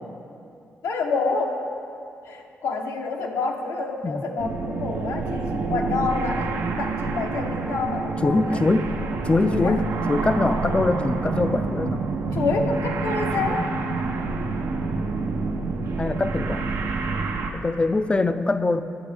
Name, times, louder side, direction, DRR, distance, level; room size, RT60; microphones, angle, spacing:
voice 1, 0.8-1.6 2.3-6.5 6.8-8.6 9.4-9.8 12.3-13.7, left 4 dB, 80° left, 1 dB, 0.9 m, -27 dB
sound 1, 4.4-17.5, right 4 dB, 80° right, 0.7 m, -27 dB
voice 2, 8.2-8.9 9.2-12.0 13.4-13.7 16.0-16.6 17.5-18.8, left 3 dB, 20° left, 11 dB, 0.4 m, -23 dB
11.5 x 7.6 x 3.4 m, 2.5 s
cardioid pair, 80°, 5 cm